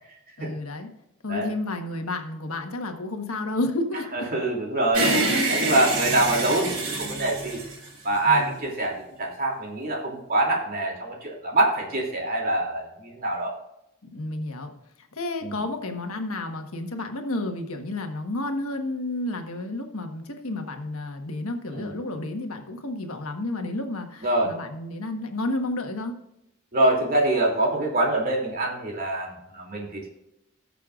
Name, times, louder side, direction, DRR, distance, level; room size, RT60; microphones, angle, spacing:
voice 1, 0.4-0.9 1.2-4.3 5.0-5.3 8.2-8.6 14.1-14.7 15.2-26.1, left 2 dB, 80° left, 4 dB, 1.4 m, -31 dB
voice 2, 4.1-5.1 5.5-7.6 8.0-13.5 15.4-15.6 21.7-21.9 24.2-24.6 26.7-30.1, right 2 dB, 45° right, -2 dB, 2.9 m, -25 dB
sound 1, 4.9-8.4, right 2 dB, 85° right, 3.9 m, -26 dB
19.0 x 6.8 x 2.5 m, 0.85 s
head